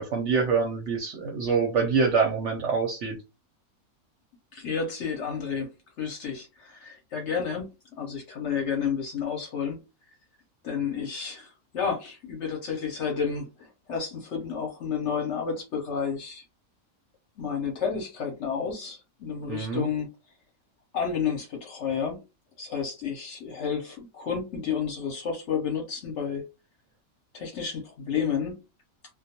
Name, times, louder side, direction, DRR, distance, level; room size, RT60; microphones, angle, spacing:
voice 1, 0.0-3.2 19.5-19.9, right 5 dB, 65° right, 0.8 m, -25 dB
voice 2, 4.5-5.7 6.0-9.8 10.6-16.4 17.4-20.1 20.9-22.2 22.6-26.5 27.3-28.6, left 6 dB, 60° left, 0.8 m, -31 dB
2.3 x 2.2 x 2.7 m
omnidirectional pair, 1.6 m